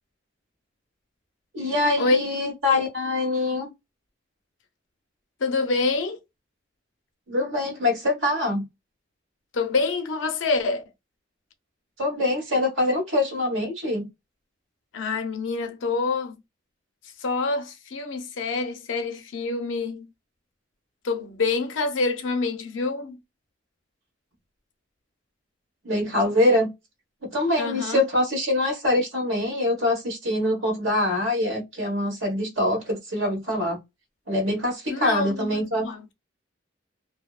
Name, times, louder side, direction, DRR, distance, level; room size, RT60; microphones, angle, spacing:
voice 1, 1.5-3.7 7.3-8.7 12.0-14.1 25.8-26.7 27.2-33.8 34.3-35.9, left 1 dB, 85° right, 1.2 m, -24 dB
voice 2, 5.4-6.2 9.5-10.8 14.9-16.4 17.2-20.1 21.0-23.2 27.6-28.0 34.9-36.1, left 3 dB, 70° left, 0.5 m, -26 dB
2.6 x 2.0 x 2.3 m
head